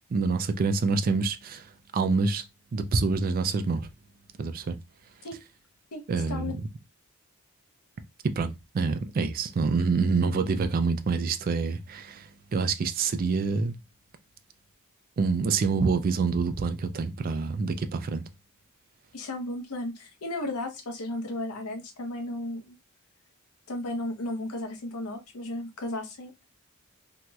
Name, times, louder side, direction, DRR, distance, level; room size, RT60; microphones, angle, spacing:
voice 1, 0.1-2.4 2.7-3.9 4.4-4.8 6.1-6.6 8.2-13.7 15.2-18.2, right 4 dB, 40° right, 0.3 m, -27 dB
voice 2, 19.1-22.8 23.7-26.5, left 1 dB, 90° left, 0.7 m, -34 dB
3.0 x 2.8 x 2.2 m
head